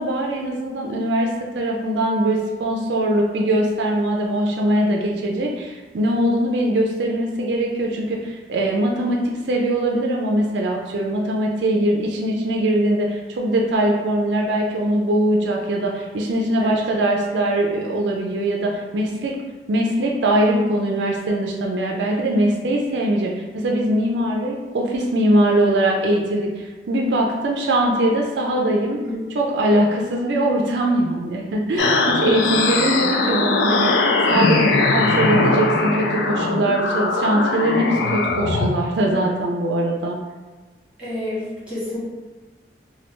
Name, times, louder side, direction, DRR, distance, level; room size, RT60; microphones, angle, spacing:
voice 1, 0.0-9.2 9.4-19.4 19.7-29.0 29.3-40.2, right 1 dB, 80° right, 0 dB, 0.4 m, -21 dB
sound 1, 31.8-38.7, left 3 dB, 80° left, 0.3 m, -20 dB
voice 2, 41.0-42.0, left 1 dB, 5° right, -10 dB, 1.2 m, -29 dB
3.0 x 2.2 x 3.2 m, 1.3 s
head